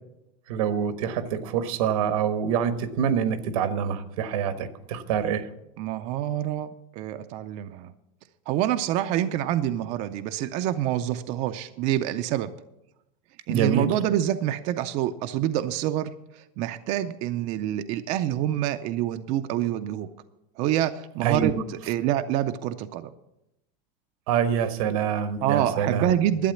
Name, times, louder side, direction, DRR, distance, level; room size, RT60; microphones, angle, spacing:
voice 1, 0.5-5.5 13.5-13.9 21.2-21.5 24.3-26.1, right 8 dB, 85° right, 10 dB, 1.4 m, -26 dB
voice 2, 5.8-7.9 8.5-12.5 13.5-20.1 20.6-23.1 25.4-26.5, right 12 dB, 40° right, 10 dB, 0.5 m, -27 dB
11.5 x 8.4 x 7.1 m, 0.87 s
supercardioid pair, 170°, 17 cm